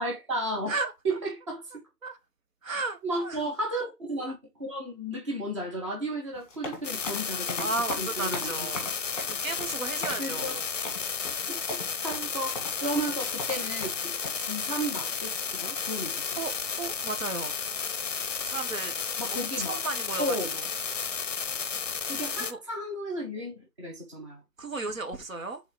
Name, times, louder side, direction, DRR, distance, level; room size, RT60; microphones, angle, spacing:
voice 1, 0.0-0.7 1.0-1.8 2.7-2.8 3.0-7.7 8.0-8.7 10.2-10.6 11.5-11.6 12.0-16.4 19.2-19.8 20.2-20.5 22.0-24.4, right 1 dB, 20° right, 1.0 m, -33 dB
voice 2, 0.7-1.2 2.0-2.2 2.6-3.4 7.6-8.9 9.3-10.6 16.4-16.5 16.8-17.6 18.4-18.9 19.3-20.7 22.1-22.6 24.6-25.6, right 3 dB, 55° right, 1.3 m, -34 dB
sound 1, 6.3-14.3, left 2 dB, 20° left, 1.9 m, -39 dB
sound 2, 6.8-22.5, left 6 dB, 50° left, 0.6 m, -33 dB
5.0 x 4.0 x 4.8 m
hypercardioid pair, 165°, 48 cm